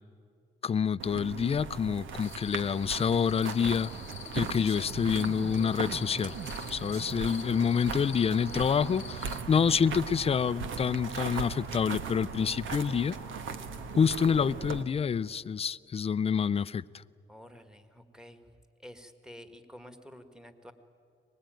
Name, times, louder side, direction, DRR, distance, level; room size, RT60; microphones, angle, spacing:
voice 1, 0.6-3.9 4.3-6.4 6.7-13.2 14.0-16.8, left 6 dB, 30° left, 0.5 m, -27 dB
sound 1, 1.0-14.8, right 5 dB, 75° right, 1.5 m, -39 dB
sound 2, 2.2-9.4, left 12 dB, 75° left, 1.1 m, -48 dB
sound 3, 2.9-7.8, right 5 dB, 55° right, 1.5 m, -44 dB
voice 2, 17.3-20.7, equal, 5° right, 1.8 m, -50 dB
23.5 x 20.5 x 9.2 m
cardioid pair, 90°, 20 cm